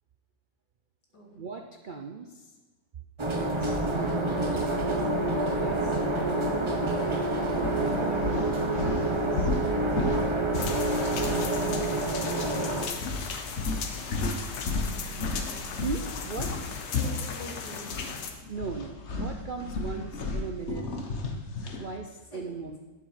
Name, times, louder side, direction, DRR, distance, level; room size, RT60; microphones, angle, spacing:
voice 1, 1.3-2.5 3.3-4.6 5.4-6.7 7.6-9.5 15.8-16.5 18.5-20.9 21.7-22.8, right 4 dB, 90° right, 4 dB, 0.4 m, -38 dB
sound 1, 3.2-12.9, right 2 dB, 20° right, 0.8 m, -27 dB
sound 2, 6.9-7.1 7.5-12.0 12.3-12.5 13.0-18.1 18.4-21.9, left 3 dB, 45° left, 1.2 m, -33 dB
sound 3, 10.5-18.3, left 5 dB, 80° left, 1.7 m, -37 dB
voice 2, 13.9-14.4 16.9-17.8 22.3-22.7, left 2 dB, 65° left, -4 dB, 3.4 m, -45 dB
10.5 x 7.8 x 5.8 m, 1.2 s
omnidirectional pair, 1.9 m